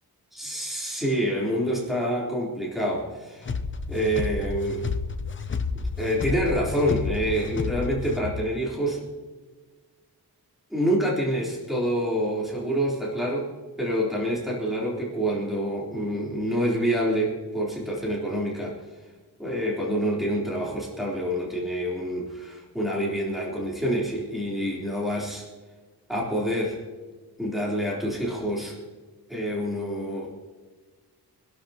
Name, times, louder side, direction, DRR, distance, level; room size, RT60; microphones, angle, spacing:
voice 1, 0.3-3.5 3.9-4.8 6.0-9.1 10.7-13.5 13.8-18.8 19.4-25.4 26.1-26.8 27.4-28.8 29.3-30.3, equal, ahead, -5 dB, 3.6 m, -27 dB
sound 1, 3.4-8.5, left 4 dB, 30° left, 0.7 m, -31 dB
26.0 x 12.0 x 2.9 m, 1.4 s
wide cardioid pair, 155°, 39 cm